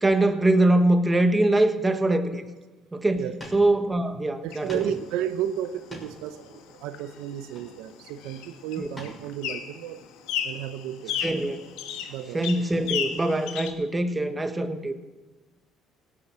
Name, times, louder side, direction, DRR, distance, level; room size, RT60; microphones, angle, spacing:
voice 1, 0.0-2.4 2.9-3.2 3.5-4.7 8.8-8.9 11.2-11.6 12.3-14.9, right 1 dB, 15° right, 8 dB, 1.4 m, -23 dB
sound 1, 3.4-3.7 4.1-4.2 4.7-5.0 5.6-6.3 7.4-8.0 9.0-9.2 9.7-9.8, left 1 dB, 20° left, 6.1 m, -42 dB
voice 2, 4.4-10.0 10.4-11.2 12.1-12.4, right 10 dB, 85° right, 10 dB, 0.8 m, -33 dB
sound 2, 4.5-13.7, left 8 dB, 85° left, 1.5 m, -36 dB
17.5 x 8.8 x 7.4 m, 1.2 s
supercardioid pair, 90°, 0 cm